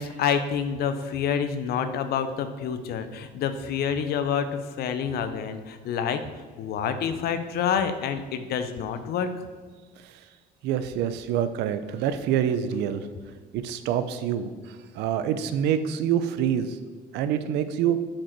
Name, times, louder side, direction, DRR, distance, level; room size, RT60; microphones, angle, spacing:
voice 1, 0.0-6.2 6.6-9.3, left 7 dB, 70° left, 10 dB, 0.7 m, -28 dB
voice 2, 10.6-13.1 13.6-14.5 15.0-16.8 17.1-18.0, right 9 dB, 85° right, 11 dB, 0.5 m, -26 dB
7.6 x 4.4 x 4.5 m, 1.5 s
cardioid pair, 110°, 17 cm